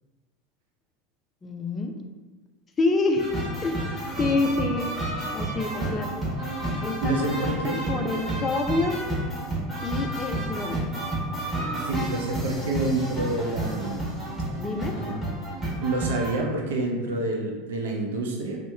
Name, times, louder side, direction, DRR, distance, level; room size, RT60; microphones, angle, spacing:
voice 1, 1.4-2.0 2.8-3.3 3.6-3.9 4.2-4.9 5.3-6.1 6.8-9.0 9.8-10.9 14.6-15.0, left 3 dB, 25° left, 4 dB, 0.4 m, -27 dB
sound 1, 3.2-16.4, right 1 dB, 5° left, 1.2 m, -30 dB
voice 2, 7.0-7.8 11.7-14.0 14.9-15.2 15.6-18.6, right 2 dB, 75° right, 0 dB, 0.5 m, -28 dB
2.9 x 2.1 x 3.4 m, 1.3 s
hypercardioid pair, 85°, 0 cm